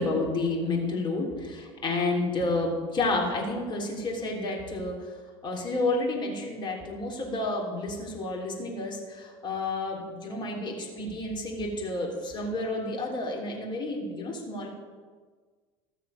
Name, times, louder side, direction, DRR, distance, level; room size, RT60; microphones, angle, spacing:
voice 1, 0.0-5.0 5.4-14.7, left 2 dB, 35° left, 0 dB, 3.5 m, -30 dB
14.5 x 7.2 x 6.7 m, 1.5 s
supercardioid pair, 110°, 14 cm